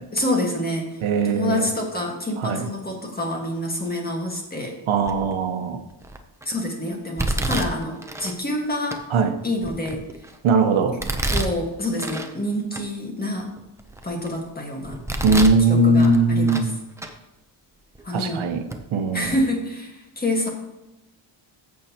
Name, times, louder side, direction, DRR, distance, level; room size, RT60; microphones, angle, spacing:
voice 1, 0.1-1.0 1.2-4.8 6.4-9.0 9.4-10.1 11.3-13.5 14.0-15.0 15.6-16.7 18.0-18.5 19.1-20.5, left 1 dB, 20° left, 1 dB, 1.6 m, -27 dB
voice 2, 1.0-1.7 2.4-2.6 4.9-5.8 9.1-9.3 10.4-11.0 15.2-16.7 18.1-18.6 18.9-19.3, right 3 dB, 75° right, 6 dB, 1.1 m, -20 dB
Domestic sounds home sounds, 5.1-5.4 6.0-6.4 7.2-8.3 8.9-9.0 9.6-10.4 11.0-12.3 12.7-12.8 13.4-14.4 14.8-15.6 16.0-16.7 17.0-17.1 17.9-18.0 18.7-18.8 19.2-19.3, right 1 dB, 5° right, 0.5 m, -28 dB
14.5 x 6.6 x 2.9 m, 0.95 s
wide cardioid pair, 165°, 49 cm